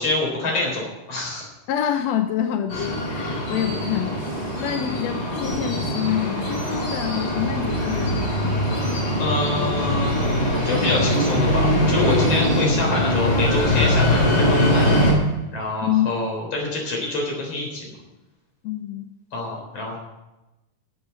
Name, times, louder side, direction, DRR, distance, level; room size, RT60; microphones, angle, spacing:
voice 1, 0.0-1.5 8.9-14.9 15.5-18.0 19.3-20.0, left 2 dB, 50° left, -1 dB, 4.9 m, -26 dB
voice 2, 1.7-4.1 4.5-8.6 15.8-16.1 18.6-19.1, left 10 dB, 70° left, 7 dB, 1.6 m, -26 dB
sound 1, 2.7-15.1, left 1 dB, 30° left, 4.8 m, -22 dB
12.0 x 8.1 x 8.2 m, 1.0 s
omnidirectional pair, 3.7 m